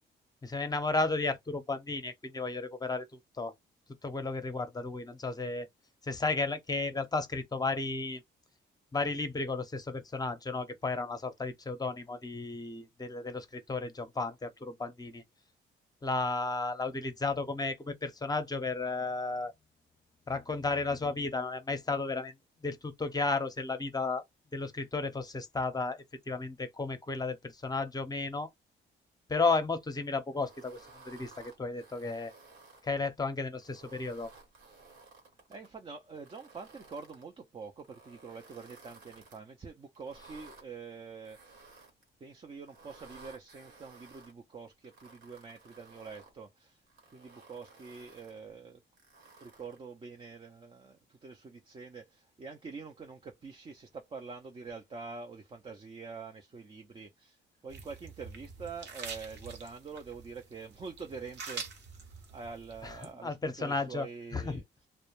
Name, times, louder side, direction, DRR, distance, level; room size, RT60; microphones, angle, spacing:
voice 1, 0.4-3.0 3.4-3.5 4.0-5.7 6.0-8.2 8.9-15.2 16.0-19.5 20.3-22.3 22.6-24.2 24.5-28.5 29.3-30.8 31.1-32.3 32.8-34.3 62.8-63.0 63.2-64.1 64.3-64.6, left 3 dB, 20° left, 0.6 m, -33 dB
sound 1, 30.3-32.9 33.5-35.7 36.1-37.2 37.8-39.4 39.9-40.6 41.2-42.1 42.6-44.3 44.8-46.3 46.9-48.4 49.0-49.8, right 3 dB, 75° right, 1.1 m, -56 dB
voice 2, 35.5-41.4 42.2-46.8 47.1-48.8 49.4-61.7 62.0-64.6, right 5 dB, 25° right, 0.5 m, -46 dB
sound 2, 57.7-63.1, right 4 dB, 60° right, 0.8 m, -46 dB
2.1 x 2.1 x 3.0 m
cardioid pair, 90°, 20 cm